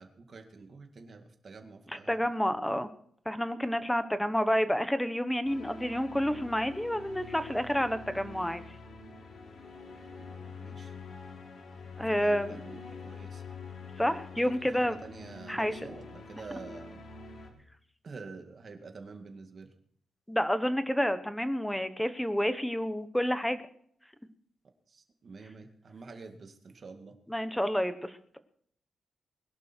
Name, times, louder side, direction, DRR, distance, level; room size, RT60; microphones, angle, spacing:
voice 1, 0.0-2.2 10.2-10.9 12.1-13.4 14.7-17.0 18.0-19.7 24.9-27.1, right 4 dB, 40° right, 5 dB, 2.2 m, -48 dB
voice 2, 2.1-2.9 3.2-8.6 12.0-12.6 14.0-15.0 15.5-15.7 20.3-23.6 27.3-28.4, equal, 5° left, 11 dB, 1.1 m, -29 dB
sound 1, 5.4-17.5, left 4 dB, 65° left, 3.6 m, -46 dB
21.0 x 11.5 x 4.5 m, 0.64 s
wide cardioid pair, 165°, 0 cm